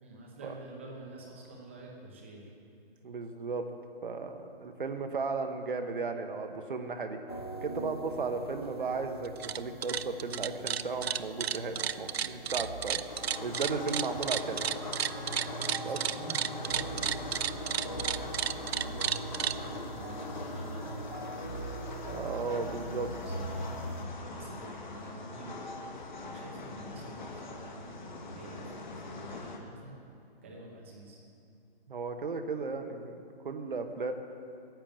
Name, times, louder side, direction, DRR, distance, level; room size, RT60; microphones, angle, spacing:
voice 1, 0.0-2.5 15.8-21.1 22.3-22.9 23.2-25.6 25.9-30.0 30.4-31.2, right 2 dB, 10° right, -1 dB, 0.9 m, -48 dB
voice 2, 3.0-3.6 4.0-7.2 7.6-13.0 13.4-14.6 15.8-16.0 22.1-23.1 31.9-34.1, right 4 dB, 55° right, 6 dB, 1.1 m, -35 dB
sound 1, 7.3-24.1, right 2 dB, 25° left, 0.4 m, -43 dB
sound 2, 9.3-9.6 9.8-19.6, right 9 dB, 85° right, 0.5 m, -32 dB
sound 3, 13.1-29.6, left 2 dB, 50° left, 1.4 m, -42 dB
10.5 x 8.9 x 8.8 m, 2.7 s
hypercardioid pair, 175°, 30 cm